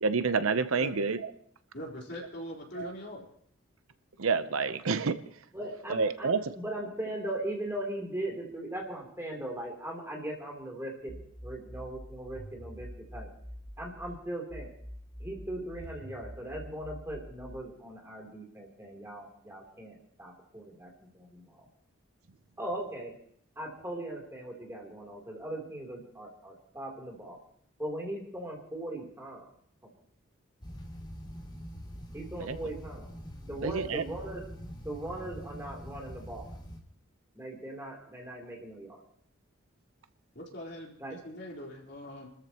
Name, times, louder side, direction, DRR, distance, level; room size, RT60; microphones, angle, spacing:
voice 1, 0.0-1.2 2.8-2.9 4.2-5.2 5.9-6.5 32.4-32.6 33.6-34.0, right 4 dB, 85° right, 11 dB, 0.8 m, -28 dB
voice 2, 1.7-3.3 40.3-42.3, equal, 50° left, -2 dB, 4.0 m, -42 dB
voice 3, 5.5-13.3 13.8-14.7 15.2-21.7 22.6-23.1 23.5-27.4 27.8-29.5 29.8-29.9 32.1-33.1 33.4-34.4 34.8-36.5 37.3-39.0 41.0-41.2, right 1 dB, 10° right, -1 dB, 3.3 m, -39 dB
sound 1, 11.1-14.1 14.5-17.5, equal, 5° left, 3.4 m, -45 dB
sound 2, 30.6-36.8, equal, 25° left, 2.9 m, -44 dB
29.5 x 13.5 x 3.0 m, 0.62 s
head